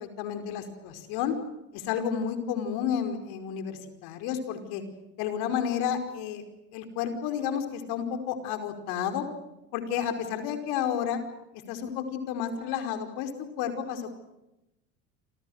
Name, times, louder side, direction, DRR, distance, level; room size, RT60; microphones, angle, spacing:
voice 1, 0.0-1.4 1.7-4.8 5.2-6.4 6.7-9.3 9.7-11.2 11.7-13.3 13.6-14.1, left 8 dB, 65° left, 7 dB, 5.2 m, -31 dB
28.0 x 27.5 x 6.6 m, 0.91 s
hypercardioid pair, 75°, 40 cm